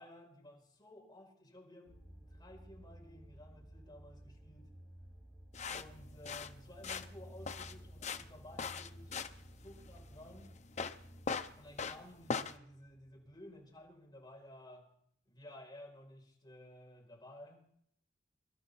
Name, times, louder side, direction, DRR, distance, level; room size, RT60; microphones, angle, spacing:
voice 1, 0.0-4.7 5.7-9.3 9.5-10.5 11.6-14.9 15.2-17.6, left 1 dB, 25° left, -1 dB, 4.7 m, -55 dB
sound 1, 1.9-13.8, right 1 dB, 10° right, 6.3 m, -56 dB
sound 2, 5.5-12.6, left 5 dB, 40° left, 0.7 m, -41 dB
24.0 x 12.5 x 4.2 m, 0.67 s
head